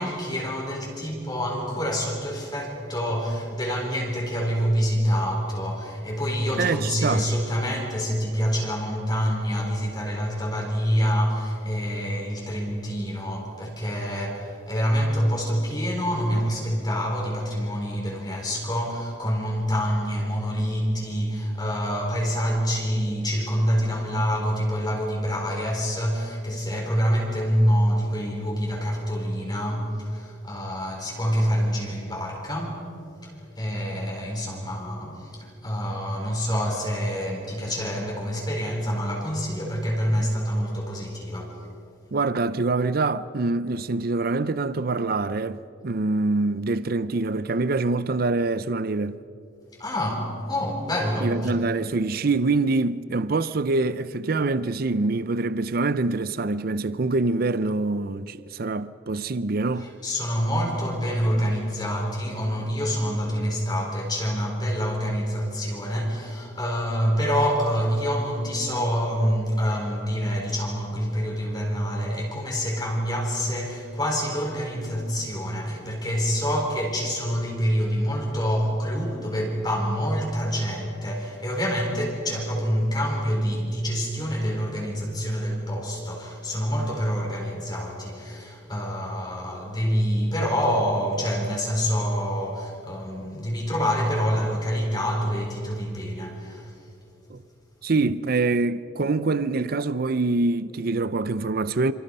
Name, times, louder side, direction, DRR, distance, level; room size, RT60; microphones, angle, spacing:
voice 1, 0.0-32.9 33.2-41.6 49.8-51.5 59.8-96.7, equal, 20° left, 4.1 m, -26 dB
voice 2, 6.6-7.2 42.1-49.2 51.2-59.9 97.3-97.4 97.8-101.9, right 3 dB, 55° right, 0.6 m, -25 dB
28.5 x 26.5 x 5.5 m
head